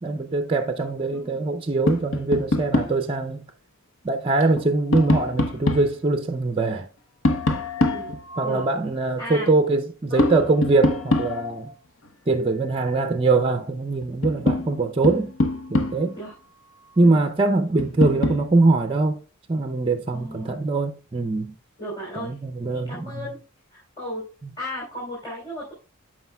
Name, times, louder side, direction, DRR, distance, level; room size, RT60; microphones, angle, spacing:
voice 1, 0.0-3.4 4.0-6.9 7.5-7.6 8.4-11.7 12.3-15.3 15.7-16.2 17.0-19.2 19.5-21.5 22.2-23.3 24.4-24.5, right 3 dB, 25° right, 0.5 m, -22 dB
voice 2, 1.1-1.5 7.8-8.1 8.4-8.6 9.2-9.5 10.1-10.3 16.1-16.3 17.0-17.2 17.7-17.9 20.1-20.6 21.8-22.3 22.7-23.4 23.7-24.2 24.6-25.7, equal, 20° left, 3.2 m, -35 dB
Tap, 1.9-3.0 4.4-6.0 7.2-8.7 10.2-11.7 13.5-13.6 14.0-16.2 17.8-18.5, left 2 dB, 65° left, 0.8 m, -24 dB
14.0 x 4.8 x 2.2 m
head